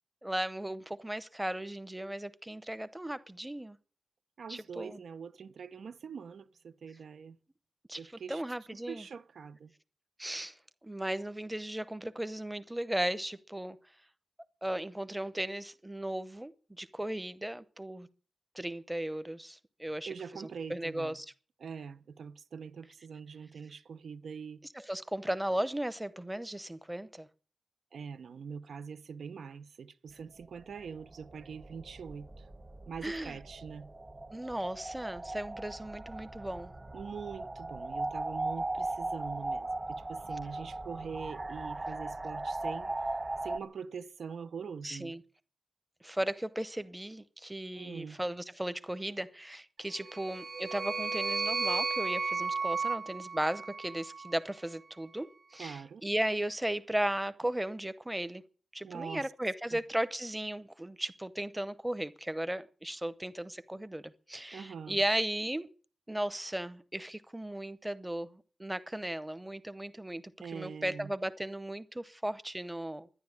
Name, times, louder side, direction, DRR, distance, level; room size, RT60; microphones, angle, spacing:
voice 1, 0.2-3.8 4.5-5.0 7.9-9.0 10.2-10.6 10.8-13.8 14.6-18.1 18.5-21.3 24.7-27.3 33.0-33.4 34.3-36.7 44.8-45.2 46.0-58.4 58.7-65.7 66.1-70.2 70.5-73.1, right 1 dB, 10° right, 0.8 m, -36 dB
voice 2, 4.4-7.4 7.9-8.4 8.9-9.7 20.1-21.2 21.6-24.6 27.9-32.5 32.9-33.9 36.9-42.9 43.4-45.1 47.7-48.2 55.6-56.0 58.8-59.3 59.7-59.8 64.5-65.0 70.4-71.1, right 6 dB, 90° right, 0.8 m, -43 dB
sound 1, 30.4-43.6, right 2 dB, 30° right, 1.2 m, -39 dB
sound 2, 50.0-54.4, right 4 dB, 45° right, 0.6 m, -34 dB
12.0 x 10.5 x 9.4 m
wide cardioid pair, 155°, 0 cm